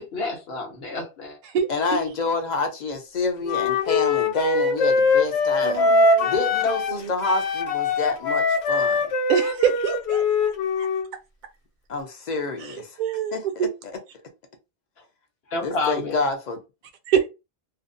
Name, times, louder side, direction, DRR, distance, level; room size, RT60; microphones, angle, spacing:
voice 1, 0.0-1.4 15.5-16.2, left 3 dB, 70° left, 1.1 m, -29 dB
voice 2, 1.7-5.8 6.2-9.0 11.9-13.0 13.3-13.7 15.6-16.6, left 3 dB, 50° left, 0.6 m, -28 dB
Wind instrument woodwind instrument, 3.4-7.0 7.2-11.1, left 3 dB, 90° left, 0.9 m, -22 dB
voice 3, 5.6-7.1 9.3-10.5 12.6-13.7 17.1-17.3, right 8 dB, 55° right, 0.6 m, -26 dB
2.5 x 2.0 x 2.5 m
omnidirectional pair, 1.1 m